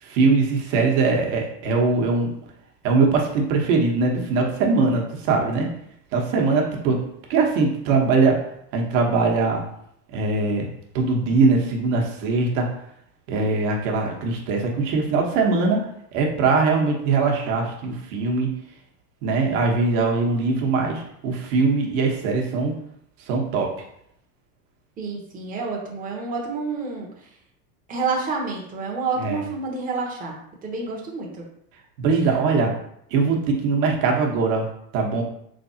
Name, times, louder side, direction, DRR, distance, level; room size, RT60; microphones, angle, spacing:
voice 1, 0.0-2.3 2.8-5.7 6.1-7.0 7.3-8.4 8.7-9.6 10.1-10.7 10.9-12.7 13.3-15.8 16.1-18.5 19.2-22.7 23.3-23.7 29.2-29.4 32.0-32.7 33.1-34.7 34.9-35.2, right 4 dB, 55° right, 1 dB, 1.1 m, -21 dB
voice 2, 25.0-27.1 27.9-30.4 30.6-31.4 32.5-32.6, right 4 dB, 20° right, -1 dB, 0.8 m, -28 dB
3.9 x 3.4 x 2.7 m, 0.72 s
supercardioid pair, 125°, 46 cm